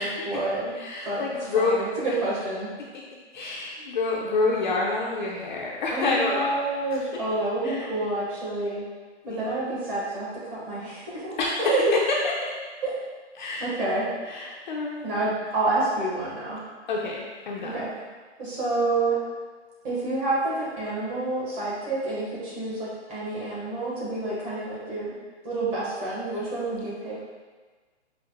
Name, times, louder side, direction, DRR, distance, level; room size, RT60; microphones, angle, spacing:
voice 1, 0.0-0.7 1.1-1.2 1.5-2.7 3.8-3.9 5.9-8.9 9.3-12.0 12.8-12.9 13.6-14.1 14.4-14.6 15.0-16.6 17.6-17.9 18.4-19.2 19.8-25.1 25.4-27.2, right 2 dB, 20° right, -7 dB, 0.8 m, -28 dB
voice 2, 0.7-1.8 2.9-3.0 3.3-6.5 6.9-7.4 7.6-7.9 9.2-9.6 11.4-12.6 13.3-13.7 14.3-15.2 16.9-17.9, left 3 dB, 45° left, -3 dB, 0.4 m, -28 dB
5.1 x 2.0 x 2.7 m, 1.4 s
hypercardioid pair, 140°, 35 cm